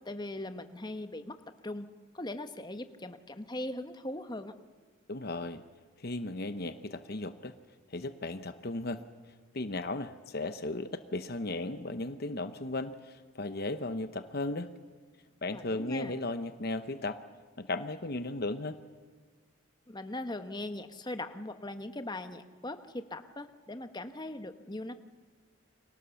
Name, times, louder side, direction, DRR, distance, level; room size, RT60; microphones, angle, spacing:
voice 1, 0.0-1.3 1.6-1.9 2.1-4.5 15.5-16.1 19.9-24.9, left 1 dB, 20° left, 8 dB, 1.1 m, -40 dB
voice 2, 5.1-5.6 6.0-7.5 7.9-9.0 9.5-14.7 15.4-17.2 17.6-18.8, left 2 dB, 45° left, 10 dB, 0.9 m, -36 dB
30.0 x 24.0 x 7.1 m, 1.5 s
head